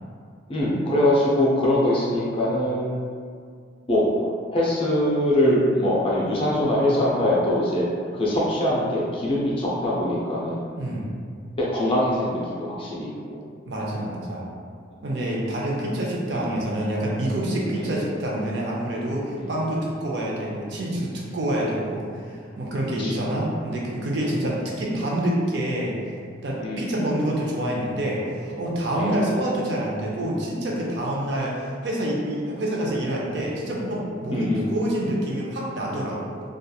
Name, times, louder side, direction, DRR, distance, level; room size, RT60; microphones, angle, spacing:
voice 1, 0.5-3.0 3.9-4.3 4.5-7.9 8.1-10.7 11.6-13.4 16.3-16.5 17.7-18.0 19.4-19.5 23.0-23.2 24.2-24.4 26.6-27.0 29.0-29.2 33.4-33.6 34.3-34.7, left 1 dB, 30° left, -6 dB, 0.5 m, -23 dB
voice 2, 10.8-11.1 13.7-14.5 15.0-26.0 26.4-36.4, right 1 dB, 65° right, -3 dB, 0.5 m, -27 dB
2.8 x 2.3 x 2.3 m, 2.1 s
head